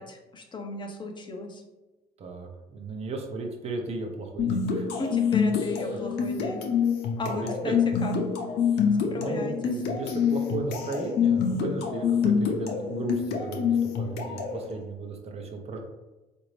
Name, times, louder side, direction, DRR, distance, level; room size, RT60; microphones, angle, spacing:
voice 1, 0.0-1.6 5.0-6.6 7.2-7.8 8.0-8.2 9.1-9.5, left 2 dB, 30° left, 3 dB, 0.6 m, -35 dB
voice 2, 2.2-4.9 7.3-7.9 8.8-15.8, right 3 dB, 40° right, 2 dB, 0.7 m, -35 dB
sound 1, 4.4-14.6, left 6 dB, 75° left, 0.7 m, -26 dB
4.0 x 2.6 x 3.1 m, 1.1 s
cardioid pair, 110°, 17 cm